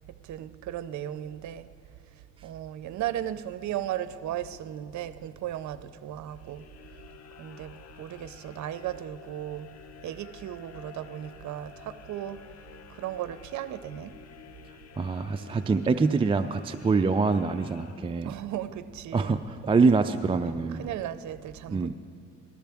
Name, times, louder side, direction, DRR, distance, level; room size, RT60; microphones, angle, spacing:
voice 1, 0.1-1.7 2.1-6.6 7.4-9.7 10.0-12.5 12.9-14.2 18.2-19.3 20.8-22.0, right 11 dB, 70° right, 0.6 m, -36 dB
sound 1, 6.2-18.5, left 9 dB, 60° left, 0.9 m, -51 dB
voice 2, 15.0-18.3 19.1-20.8 21.7-21.9, right 4 dB, 20° right, 0.3 m, -25 dB
19.0 x 13.5 x 3.5 m
cardioid pair, 90°, 30 cm